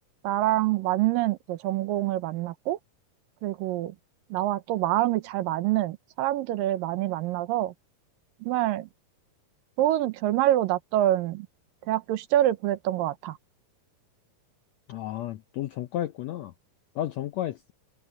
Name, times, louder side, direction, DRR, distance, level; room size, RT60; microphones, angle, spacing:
voice 1, 0.2-2.8 3.4-3.9 4.3-7.7 8.4-8.9 9.8-11.5 11.9-13.4, right 14 dB, 90° right, 2.6 m, -26 dB
voice 2, 14.9-16.5 16.9-17.7, left 12 dB, 80° left, 1.5 m, -32 dB
open air
omnidirectional pair, 4.0 m